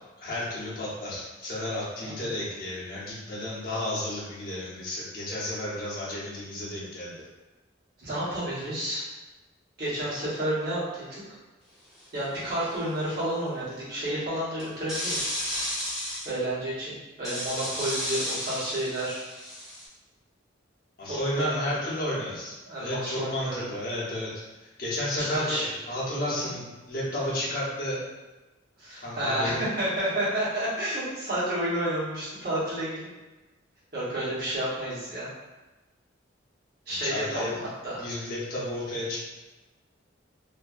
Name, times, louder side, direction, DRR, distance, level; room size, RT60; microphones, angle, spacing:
voice 1, 0.2-7.3 21.0-24.3 24.6-28.0 29.0-29.6 37.0-37.5 38.0-39.2, left 1 dB, 50° left, -8 dB, 0.8 m, -32 dB
voice 2, 8.0-9.0 9.8-11.2 12.1-15.3 16.2-19.3 21.1-21.7 22.7-23.7 25.2-25.7 26.4-26.5 28.8-33.1 33.9-35.3 36.9-38.0, right 1 dB, 50° right, -10 dB, 1.0 m, -30 dB
sound 1, 12.0-12.2 14.6-16.3 17.2-19.9, equal, ahead, 0.7 m, -32 dB
2.5 x 2.2 x 2.4 m, 1.1 s
head